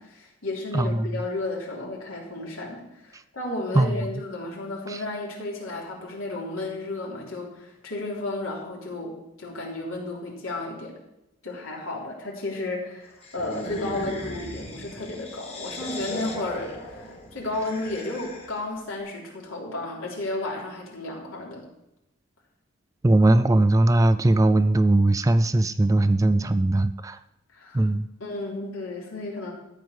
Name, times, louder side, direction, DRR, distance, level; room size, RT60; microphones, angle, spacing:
voice 1, 0.0-10.9 11.4-21.6 27.5-27.8 28.2-29.5, left 2 dB, 75° left, -3 dB, 3.5 m, -33 dB
voice 2, 0.7-1.1 3.1-3.2 3.7-4.1 4.9-5.0 23.0-27.2 27.7-28.1, right 2 dB, 15° right, 12 dB, 0.3 m, -20 dB
sound 1, 13.2-18.7, left 1 dB, 30° left, 1.8 m, -37 dB
13.5 x 4.7 x 8.0 m, 0.89 s
head